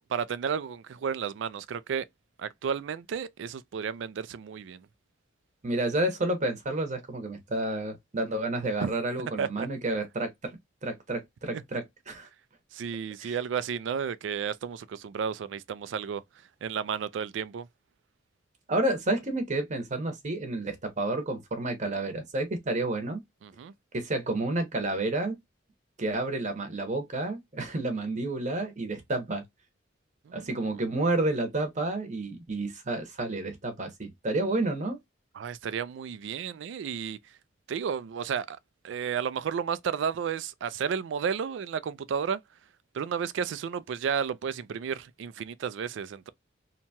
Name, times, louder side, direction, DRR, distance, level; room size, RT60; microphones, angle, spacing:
voice 1, 0.1-2.0 2.4-4.9 8.8-8.9 9.4-9.7 11.5-11.6 12.7-16.2 16.6-17.7 23.4-23.7 30.3-30.6 35.3-37.2 37.7-38.6 38.8-42.4 42.9-46.3, right 7 dB, 70° right, 0.3 m, -32 dB
voice 2, 5.6-10.3 10.8-12.3 13.2-13.4 18.7-23.2 23.9-25.4 26.0-29.4 30.3-35.0, right 2 dB, 40° right, 0.8 m, -30 dB
2.8 x 2.2 x 2.7 m
head